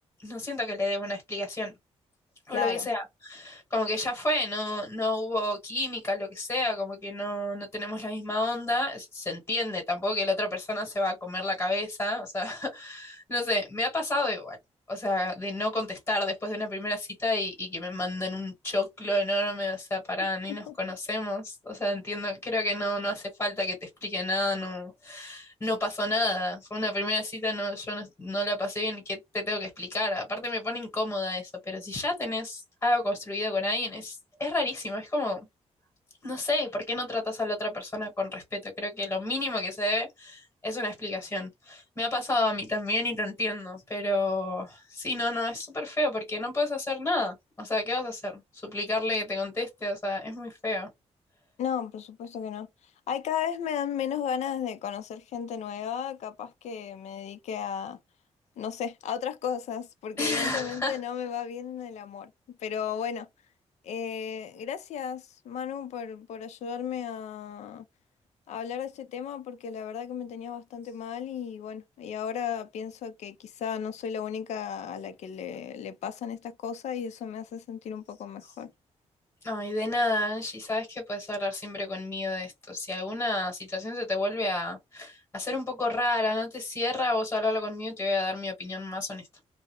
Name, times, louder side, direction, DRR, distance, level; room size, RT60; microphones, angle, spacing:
voice 1, 0.2-1.7 2.5-14.6 14.9-35.4 36.2-50.9 60.2-61.0 79.4-89.3, left 1 dB, 20° left, 1.0 m, -30 dB
voice 2, 2.5-2.9 20.5-20.7 51.6-52.7 53.1-58.0 58.6-62.3 62.6-63.3 63.8-67.9 68.5-78.7, left 8 dB, 85° left, 0.4 m, -34 dB
2.4 x 2.0 x 2.8 m
wide cardioid pair, 170°, 11 cm